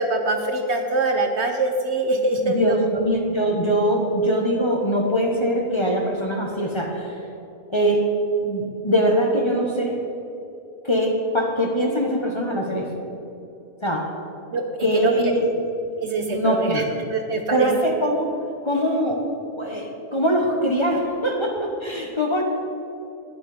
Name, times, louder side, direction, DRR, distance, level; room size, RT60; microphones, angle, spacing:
voice 1, 0.0-2.8 14.5-14.6 14.9-15.1 16.0-16.8 17.1-17.7, right 2 dB, 55° right, 4 dB, 1.0 m, -23 dB
voice 2, 2.4-7.1 7.7-8.1 8.4-10.0 10.8-12.9 13.8-14.1 14.8-15.7 16.3-17.0 17.5-18.3 18.6-19.2 19.6-22.4, equal, 20° left, 0 dB, 1.3 m, -22 dB
13.0 x 10.0 x 5.0 m, 2.9 s
omnidirectional pair, 1.5 m